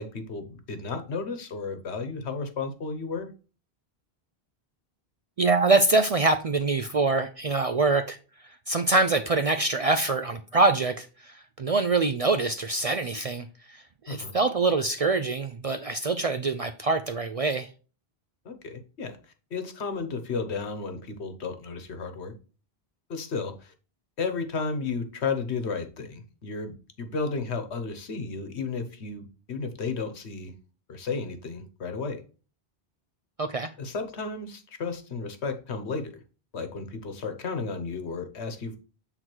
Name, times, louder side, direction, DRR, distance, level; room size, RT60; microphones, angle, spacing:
voice 1, 0.0-3.3 14.1-14.3 18.4-19.2 19.5-22.3 23.1-23.7 24.2-30.5 30.9-32.2 33.8-36.1 36.5-38.8, left 4 dB, 85° left, 7 dB, 1.4 m, -33 dB
voice 2, 5.4-8.2 8.7-17.7 33.4-33.7, right 3 dB, 50° right, 9 dB, 0.4 m, -25 dB
7.8 x 3.9 x 4.5 m, 0.35 s
omnidirectional pair, 1.1 m